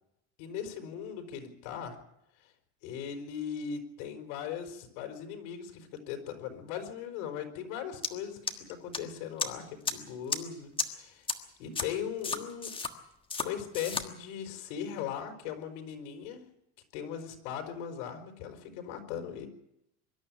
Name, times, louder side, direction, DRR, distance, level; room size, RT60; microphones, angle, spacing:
voice 1, 0.4-2.0 2.8-11.3 11.6-12.7 13.4-16.4 16.9-19.5, left 8 dB, 90° left, 5 dB, 4.9 m, -39 dB
sound 1, 8.0-8.1 8.5-9.0 9.4-9.5 9.8-9.9 10.3-10.4 10.8-10.9 11.3-11.4 11.7-11.8 12.2-12.9 13.3-13.5 13.7-14.0, left 4 dB, 15° left, 1.5 m, -31 dB
24.0 x 12.5 x 8.8 m, 0.82 s
cardioid pair, 160°, 36 cm